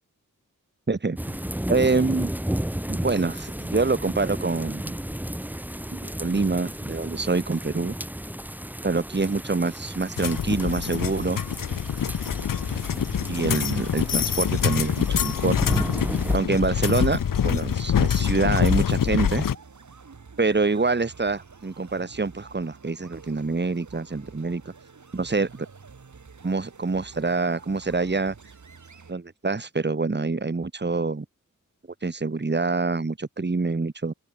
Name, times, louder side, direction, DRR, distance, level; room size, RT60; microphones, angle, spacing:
voice 1, 0.9-1.4 1.7-2.3 2.9-5.0 5.9-7.9 8.8-11.4 13.3-15.6 16.3-19.5 20.4-24.6 25.1-25.5 26.4-28.3 29.1-31.2 32.0-34.1, right 3 dB, 35° right, 2.4 m, -26 dB
sound 1, 1.2-16.4, right 1 dB, 5° right, 1.3 m, -33 dB
sound 2, 10.2-19.5, left 8 dB, 85° left, 0.9 m, -25 dB
sound 3, 13.1-29.1, right 5 dB, 65° right, 4.2 m, -48 dB
open air
wide cardioid pair, 90°, 32 cm